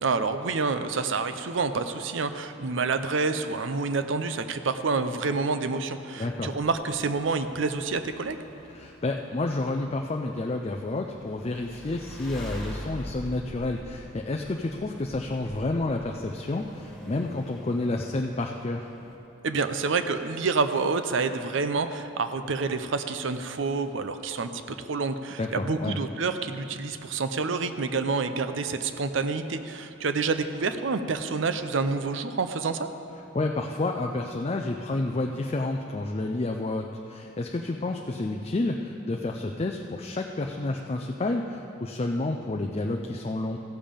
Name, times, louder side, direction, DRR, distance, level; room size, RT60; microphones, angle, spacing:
voice 1, 0.0-8.4 19.4-32.9, right 4 dB, 65° right, 9 dB, 0.6 m, -28 dB
voice 2, 6.2-6.5 8.7-18.9 25.4-26.0 33.3-43.6, left 2 dB, 30° left, 2 dB, 0.4 m, -30 dB
sound 1, 6.6-19.2, equal, ahead, 1.7 m, -45 dB
15.0 x 7.2 x 5.1 m, 2.9 s
head